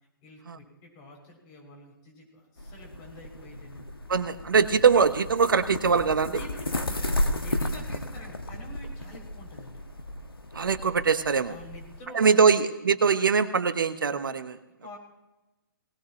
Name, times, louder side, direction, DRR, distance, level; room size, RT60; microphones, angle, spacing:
voice 1, 0.2-3.9 6.2-9.8 11.5-12.6 14.8-15.0, left 1 dB, 30° left, 0 dB, 6.8 m, -47 dB
sound 1, 2.6-12.0, left 1 dB, 85° left, 1.4 m, -34 dB
voice 2, 4.1-6.4 10.5-11.5 12.1-14.6, right 5 dB, 65° right, 11 dB, 1.0 m, -22 dB
20.0 x 19.0 x 3.1 m, 1.0 s
figure-of-eight pair, 130°, 12 cm